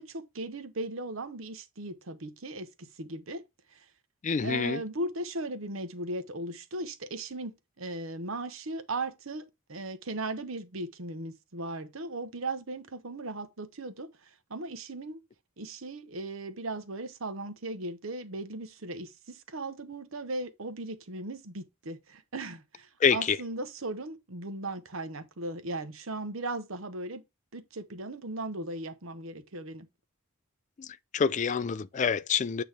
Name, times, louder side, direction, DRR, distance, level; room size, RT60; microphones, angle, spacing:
voice 1, 0.0-3.4 3.7-3.9 4.4-15.2 15.6-27.2 27.5-29.9, right 2 dB, 75° right, 1.0 m, -37 dB
voice 2, 4.2-4.8 23.0-23.4 30.8-30.9 31.1-32.6, left 6 dB, 35° left, 0.3 m, -26 dB
8.6 x 3.0 x 5.0 m
head